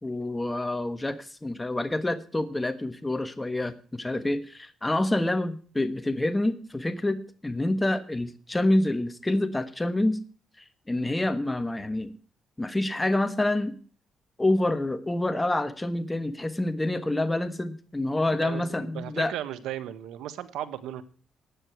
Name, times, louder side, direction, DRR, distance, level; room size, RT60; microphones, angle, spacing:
voice 1, 0.0-10.2 10.9-12.1 12.6-13.7 14.4-19.3, left 1 dB, 15° left, 10 dB, 1.4 m, -27 dB
voice 2, 18.4-21.0, right 12 dB, 85° right, 14 dB, 1.3 m, -36 dB
15.5 x 9.9 x 4.6 m, 0.40 s
cardioid pair, 90°, 0 cm